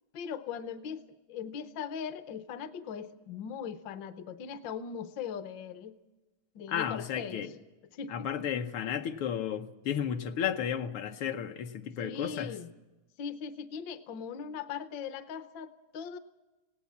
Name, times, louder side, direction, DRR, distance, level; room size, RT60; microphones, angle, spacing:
voice 1, 0.1-6.0 6.5-7.5 7.9-8.5 12.0-12.7 13.2-16.2, left 7 dB, 65° left, 11 dB, 1.5 m, -40 dB
voice 2, 6.7-7.5 8.1-12.6, left 8 dB, 85° left, 6 dB, 1.8 m, -33 dB
18.0 x 18.0 x 8.5 m, 1.1 s
omnidirectional pair, 2.3 m